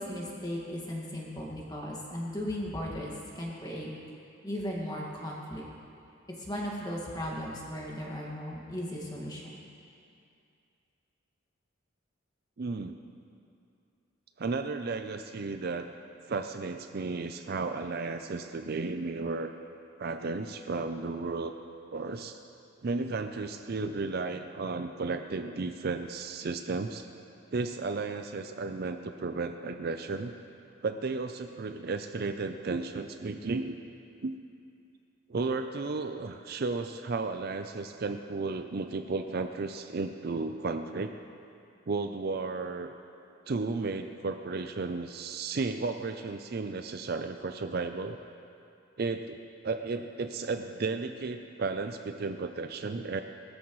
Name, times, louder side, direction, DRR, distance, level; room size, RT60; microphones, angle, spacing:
voice 1, 0.0-3.9 4.4-5.6 6.4-9.6, equal, 20° left, -3 dB, 1.9 m, -36 dB
voice 2, 12.6-13.0 14.4-15.9 16.3-19.5 20.0-21.5 21.9-22.4 22.8-27.1 27.5-30.3 30.8-33.8 34.2-34.3 35.3-41.1 41.9-42.9 43.5-48.2 49.0-53.2, right 3 dB, 45° right, 7 dB, 0.4 m, -33 dB
19.5 x 13.5 x 3.1 m, 2.5 s
head